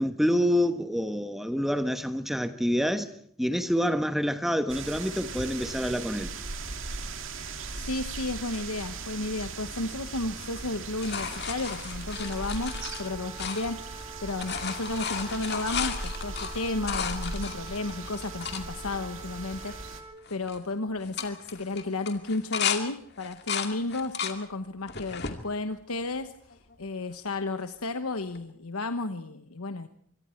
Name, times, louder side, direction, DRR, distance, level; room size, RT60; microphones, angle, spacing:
voice 1, 0.0-3.1 3.4-6.3, equal, ahead, 1.1 m, -27 dB
sound 1, 4.7-20.0, right 3 dB, 60° right, 2.3 m, -39 dB
voice 2, 7.8-29.9, left 2 dB, 90° left, 1.2 m, -33 dB
sound 2, 10.4-14.0 14.3-18.6 19.2-19.3 19.5-20.0 20.3-20.6 21.0-22.8 23.2-24.4 24.9-25.4 26.0-26.7 28.4-28.5, left 7 dB, 50° left, 2.3 m, -34 dB
sound 3, 12.2-20.1, right 3 dB, 25° right, 2.4 m, -46 dB
25.0 x 25.0 x 4.5 m
head